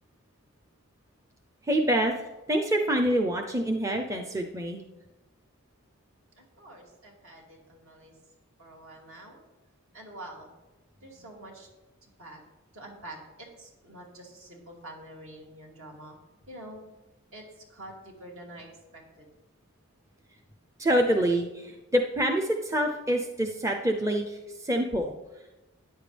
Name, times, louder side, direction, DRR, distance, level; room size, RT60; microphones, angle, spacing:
voice 1, 1.6-4.8 20.8-25.1, right 1 dB, 15° right, 3 dB, 0.6 m, -26 dB
voice 2, 6.4-8.1 8.6-9.4 9.9-10.5 11.0-11.7 12.2-12.4 12.7-16.2 16.5-16.8 17.3-19.3, right 1 dB, 65° right, -1 dB, 2.7 m, -46 dB
13.5 x 10.0 x 3.4 m, 1.1 s
head